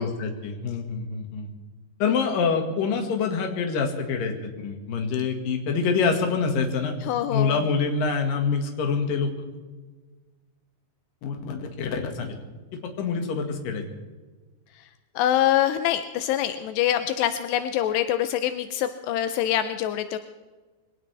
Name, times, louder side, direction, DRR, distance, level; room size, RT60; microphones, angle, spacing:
voice 1, 0.0-1.5 2.0-6.9 7.3-9.3 11.2-12.3 12.8-13.8, left 5 dB, 60° left, 4 dB, 3.3 m, -26 dB
voice 2, 7.0-7.6 15.2-20.2, left 11 dB, 85° left, 9 dB, 2.8 m, -25 dB
22.5 x 18.0 x 3.4 m, 1.3 s
omnidirectional pair, 4.8 m